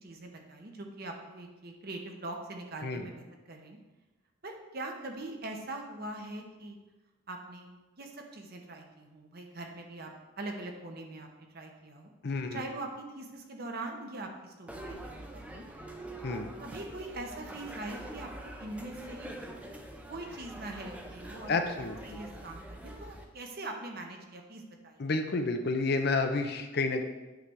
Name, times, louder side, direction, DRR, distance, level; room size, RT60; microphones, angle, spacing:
voice 1, 0.0-3.8 4.4-6.8 7.3-10.1 10.4-12.1 12.5-15.6 16.3-19.3 20.1-21.6 22.0-25.0, right 2 dB, 45° right, 3 dB, 0.9 m, -42 dB
voice 2, 12.2-12.6 16.2-16.5 21.5-22.2 25.0-27.0, left 3 dB, 50° left, 6 dB, 0.6 m, -30 dB
sound 1, 14.7-23.2, right 1 dB, 5° right, 0.6 m, -45 dB
8.1 x 3.3 x 6.2 m, 1.1 s
head